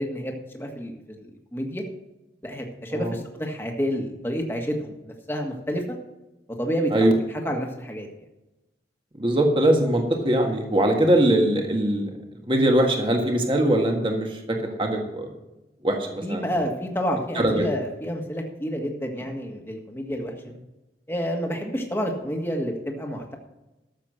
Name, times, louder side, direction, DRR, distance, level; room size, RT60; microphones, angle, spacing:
voice 1, 0.0-1.8 2.4-6.0 6.6-7.1 7.4-8.1 16.2-20.3 21.1-23.4, equal, 15° left, 2 dB, 1.7 m, -29 dB
voice 2, 9.2-12.1 12.5-15.3 15.8-16.4 17.3-17.7, right 1 dB, 30° right, 2 dB, 1.6 m, -21 dB
13.0 x 7.4 x 6.3 m, 0.98 s
head